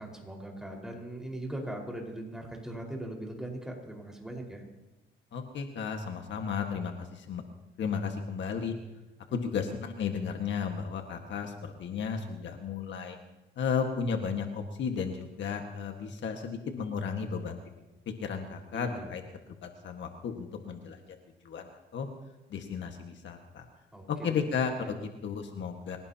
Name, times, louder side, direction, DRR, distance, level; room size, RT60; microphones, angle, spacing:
voice 1, 0.0-4.6 18.7-19.1 23.9-24.4 24.8-24.9, right 1 dB, 5° right, -1 dB, 4.9 m, -40 dB
voice 2, 5.3-7.4 7.8-8.7 9.3-13.2 13.5-17.6 18.2-19.2 19.6-21.0 21.4-22.1 22.5-23.6 24.1-26.0, left 6 dB, 65° left, 4 dB, 1.7 m, -34 dB
26.0 x 17.0 x 2.9 m, 1.0 s
cardioid pair, 90°, 20 cm